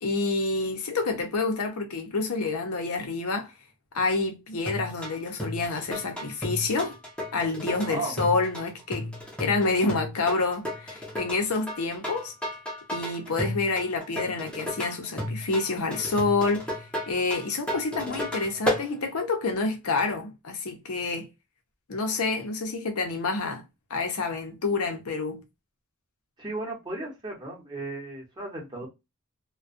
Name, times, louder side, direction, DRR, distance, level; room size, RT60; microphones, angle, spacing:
voice 1, 0.0-3.5 3.9-7.0 7.3-9.1 9.4-12.3 12.9-16.6 17.1-21.3 21.9-23.6 23.9-25.4, left 3 dB, 80° left, 0.7 m, -28 dB
sound 1, 4.7-18.9, left 1 dB, 5° left, 0.6 m, -33 dB
voice 2, 7.8-8.2 26.4-28.9, right 2 dB, 20° right, 0.9 m, -35 dB
2.3 x 2.2 x 2.4 m
head